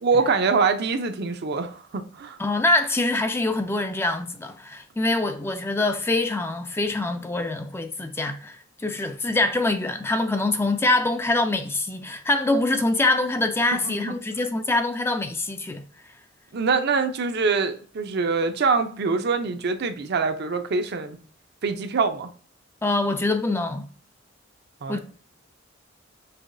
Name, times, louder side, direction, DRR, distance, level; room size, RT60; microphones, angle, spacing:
voice 1, 0.0-2.4 13.8-14.1 16.5-21.2 21.6-22.3 24.8-25.0, right 4 dB, 60° right, 0.5 m, -24 dB
voice 2, 2.4-15.8 22.8-23.9 24.9-25.0, left 2 dB, 10° left, 0.3 m, -24 dB
5.6 x 3.0 x 2.5 m
head